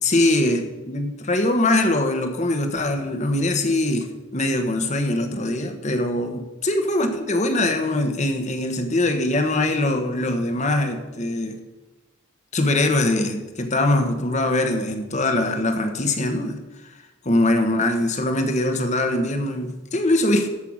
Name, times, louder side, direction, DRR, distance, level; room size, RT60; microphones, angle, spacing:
voice 1, 0.0-11.6 12.5-16.6 16.8-16.9 17.2-20.5, left 1 dB, 35° left, 6 dB, 1.2 m, -22 dB
13.0 x 5.8 x 6.3 m, 1.1 s
head